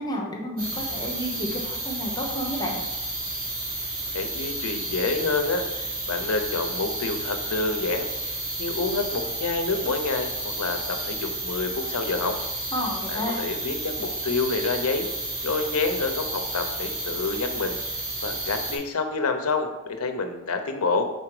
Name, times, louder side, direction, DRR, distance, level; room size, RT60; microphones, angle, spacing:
voice 1, 0.0-2.8 12.7-13.4, left 1 dB, 20° left, -1 dB, 1.0 m, -31 dB
sound 1, 0.6-18.8, right 2 dB, 40° right, 1.6 m, -31 dB
voice 2, 4.1-12.3 13.1-15.1 15.4-21.0, left 3 dB, 75° left, 6 dB, 0.7 m, -28 dB
4.9 x 4.0 x 4.8 m, 1.0 s
head